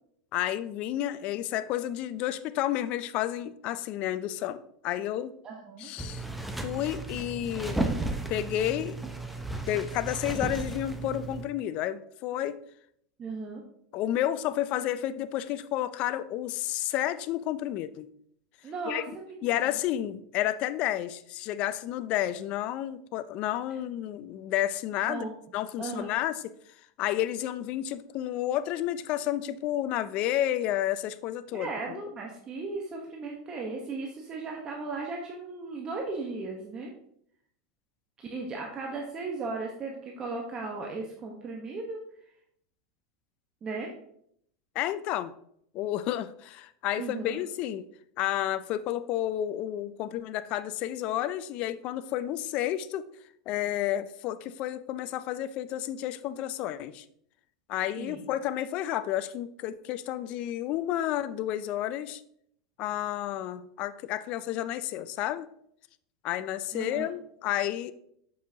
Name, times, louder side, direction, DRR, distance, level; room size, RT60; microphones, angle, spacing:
voice 1, 0.3-5.3 5.8-6.2 6.6-7.8 8.3-9.0 9.7-12.6 13.9-18.1 18.9-19.0 19.4-25.3 25.5-26.4 27.0-32.0 44.8-45.3 45.7-47.8 48.2-53.0 53.5-57.0 57.7-62.2 62.8-65.5 66.2-67.9, left 12 dB, 50° left, 14 dB, 0.4 m, -31 dB
voice 2, 5.4-5.9 13.2-13.6 18.6-19.5 25.1-25.3 25.8-26.1 31.5-36.9 38.2-42.0 43.6-43.9 47.0-47.4 58.0-58.2 66.7-67.1, right 3 dB, 30° right, 0 dB, 1.1 m, -36 dB
sound 1, 6.0-11.4, right 2 dB, ahead, 0.7 m, -34 dB
7.5 x 5.5 x 2.8 m, 0.69 s
hypercardioid pair, 110°, 2 cm